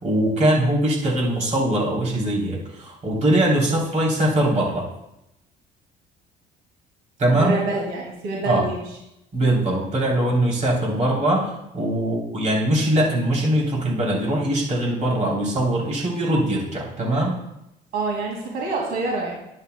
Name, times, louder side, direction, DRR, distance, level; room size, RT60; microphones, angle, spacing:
voice 1, 0.0-4.8 7.2-7.5 8.4-8.6 9.3-17.3, right 1 dB, 45° right, -2 dB, 3.3 m, -21 dB
voice 2, 7.3-8.8 17.9-19.3, right 3 dB, 75° right, -2 dB, 2.3 m, -26 dB
12.5 x 10.0 x 2.2 m, 0.87 s
cardioid pair, 110°, 17 cm